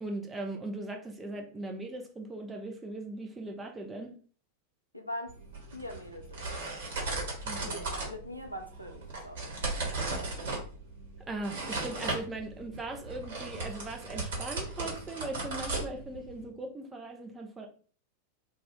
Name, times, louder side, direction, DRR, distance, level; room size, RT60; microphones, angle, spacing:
voice 1, 0.0-4.2 7.4-7.8 11.3-17.7, right 2 dB, 15° right, 0.6 m, -39 dB
voice 2, 4.9-5.4 5.7-6.9 7.6-9.6, left 1 dB, 90° right, 0.5 m, -42 dB
sound 1, 5.3-16.5, right 3 dB, 55° right, 1.2 m, -37 dB
2.5 x 2.3 x 3.5 m
figure-of-eight pair, 90°, 0 cm